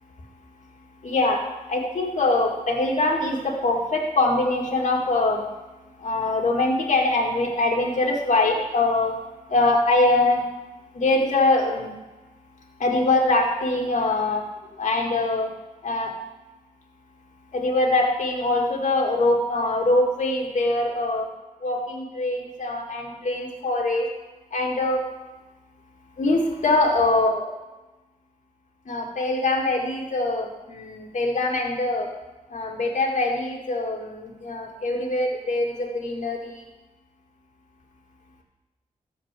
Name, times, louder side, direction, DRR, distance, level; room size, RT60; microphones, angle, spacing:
voice 1, 1.0-1.4 1.7-5.4 6.0-9.2 9.5-10.4 10.9-11.9 12.8-14.4 14.7-15.5 15.8-16.1 17.5-21.3 21.6-24.1 24.5-25.0 26.2-27.5 28.9-32.1 32.5-36.6, left 2 dB, 60° left, 0 dB, 2.2 m, -23 dB
13.0 x 4.6 x 7.6 m, 1.1 s
cardioid pair, 90°, 14 cm